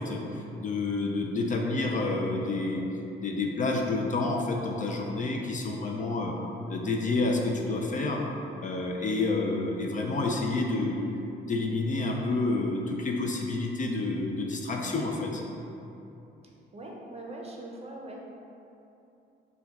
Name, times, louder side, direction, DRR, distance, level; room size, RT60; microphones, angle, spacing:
voice 1, 0.0-2.8 3.2-6.4 6.7-8.2 8.6-11.0 11.4-15.4, left 2 dB, 40° left, 0 dB, 0.5 m, -29 dB
voice 2, 16.7-18.2, right 2 dB, 30° right, -1 dB, 0.6 m, -41 dB
4.5 x 2.3 x 4.0 m, 2.8 s
cardioid pair, 90°, 20 cm